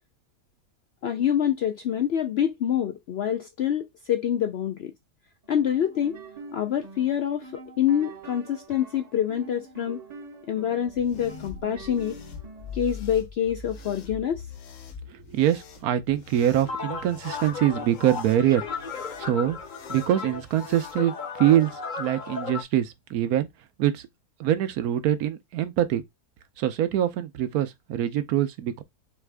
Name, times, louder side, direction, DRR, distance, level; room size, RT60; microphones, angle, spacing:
voice 1, 1.0-4.9 5.5-6.2 6.5-10.0 10.5-12.2 12.7-14.4, left 9 dB, 75° left, 0.5 m, -26 dB
sound 1, 5.4-12.9, right 3 dB, 35° right, 0.7 m, -45 dB
sound 2, 10.8-21.0, left 6 dB, 60° left, 1.1 m, -44 dB
voice 2, 15.1-18.6 19.2-19.6 19.9-21.7 22.0-23.5 23.8-24.0 24.4-26.0 26.6-28.8, right 11 dB, 75° right, 1.2 m, -24 dB
sound 3, 16.6-22.6, left 5 dB, 40° left, 0.7 m, -35 dB
4.1 x 3.6 x 3.3 m
omnidirectional pair, 1.6 m